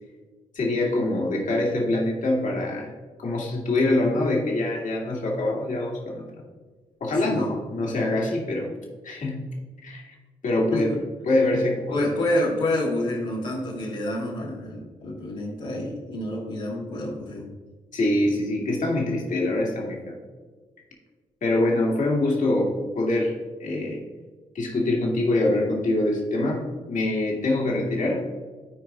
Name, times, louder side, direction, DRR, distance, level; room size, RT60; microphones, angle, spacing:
voice 1, 0.5-2.9 3.2-6.3 7.0-8.7 9.0-9.5 9.8-10.2 10.4-10.9 11.3-12.1 17.9-20.2 21.4-24.0 24.5-28.2, left 2 dB, 55° left, -2 dB, 2.0 m, -24 dB
voice 2, 7.1-7.5 10.7-11.0 11.9-17.5, left 1 dB, 85° left, -7 dB, 1.7 m, -28 dB
14.0 x 4.7 x 2.4 m, 1.4 s
hypercardioid pair, 40°, 16 cm